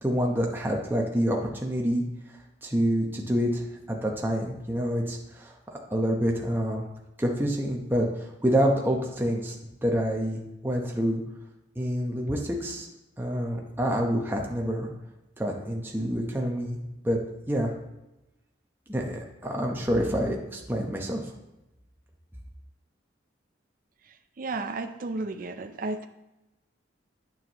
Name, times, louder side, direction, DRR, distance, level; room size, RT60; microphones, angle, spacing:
voice 1, 0.0-2.0 2.6-6.8 7.2-9.5 9.8-11.2 11.8-12.9 13.2-14.9 15.4-16.8 17.0-17.2 17.5-17.7 18.9-21.3, equal, 10° right, 0 dB, 0.9 m, -27 dB
voice 2, 24.0-26.1, right 3 dB, 45° right, 7 dB, 0.4 m, -33 dB
8.8 x 7.2 x 3.0 m, 0.95 s
head